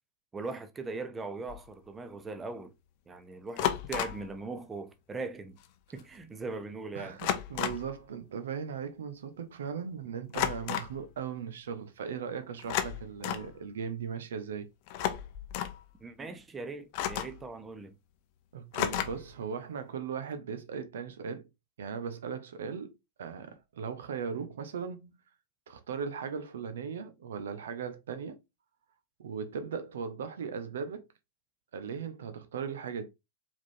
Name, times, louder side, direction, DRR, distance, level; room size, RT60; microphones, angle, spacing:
voice 1, 0.3-2.7 3.1-5.6 5.9-7.2 16.0-18.0, right 3 dB, 15° right, 0.7 m, -40 dB
sound 1, 1.5-1.7 3.6-4.3 5.6-5.7 6.0-6.2 7.2-7.9 10.3-11.0 12.6-13.5 14.9-15.8 16.9-17.5 18.7-19.3, left 11 dB, 45° left, 0.6 m, -32 dB
voice 2, 6.9-14.7 18.5-21.5 21.8-22.9 23.2-25.1 25.7-28.4 29.2-31.1 31.7-33.1, right 6 dB, 60° right, 0.6 m, -38 dB
4.8 x 3.6 x 2.7 m
figure-of-eight pair, 90°, 0 cm